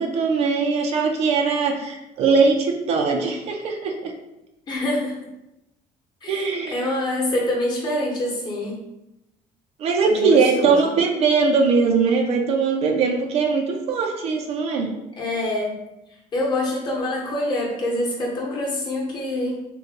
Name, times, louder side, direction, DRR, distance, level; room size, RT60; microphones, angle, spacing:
voice 1, 0.0-4.1 6.3-6.9 9.8-14.9, right 4 dB, 50° right, 3 dB, 0.4 m, -21 dB
voice 2, 4.7-5.2 6.2-8.8 10.0-10.9 15.2-15.7 16.3-19.6, left 1 dB, 30° left, -2 dB, 0.9 m, -25 dB
3.8 x 2.2 x 2.7 m, 0.90 s
cardioid pair, 155°, 14 cm